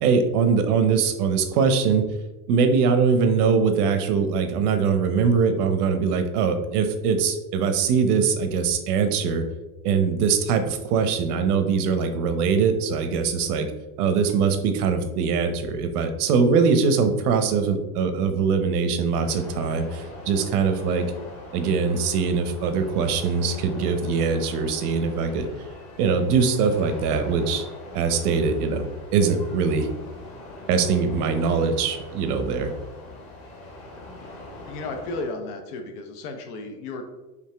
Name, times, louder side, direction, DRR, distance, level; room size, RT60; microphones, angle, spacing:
voice 1, 0.0-2.0 2.5-9.4 9.8-13.7 14.0-21.1 21.5-25.5 26.0-27.6 27.9-29.9 30.7-32.7, right 5 dB, 80° right, 7 dB, 0.8 m, -22 dB
sound 1, 19.1-35.2, left 1 dB, 30° left, 1.1 m, -42 dB
voice 2, 34.6-37.0, left 3 dB, 85° left, 5 dB, 0.9 m, -34 dB
5.0 x 2.6 x 3.3 m, 1.1 s
supercardioid pair, 155°, 44 cm